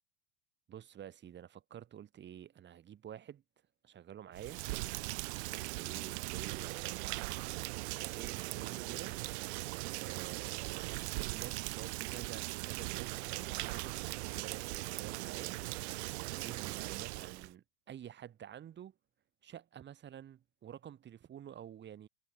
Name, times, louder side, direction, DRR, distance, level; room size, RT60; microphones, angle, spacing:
voice 1, 0.7-3.4 3.8-4.6 5.5-7.0 8.0-9.2 10.0-10.9 11.3-14.0 14.3-15.6 16.3-18.9 19.4-22.1, right 10 dB, 30° right, 2.9 m, -50 dB
Rain, 4.3-17.5, right 23 dB, 65° right, 0.5 m, -39 dB
sound 1, 4.9-10.3, right 20 dB, 50° right, 6.0 m, -67 dB
hypercardioid pair, 110°, 35 cm